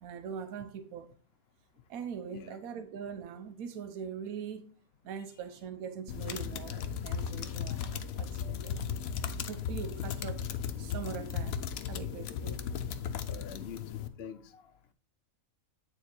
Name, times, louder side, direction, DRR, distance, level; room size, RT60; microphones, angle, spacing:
voice 1, 0.0-1.1 1.9-4.7 5.0-8.9 9.2-10.4 10.8-11.6 11.9-12.7, right 7 dB, 90° right, 1.1 m, -42 dB
sound 1, 6.1-14.1, left 7 dB, 80° left, 1.1 m, -36 dB
voice 2, 13.3-14.7, left 8 dB, 55° left, 0.8 m, -46 dB
9.0 x 3.9 x 4.4 m
omnidirectional pair, 1.5 m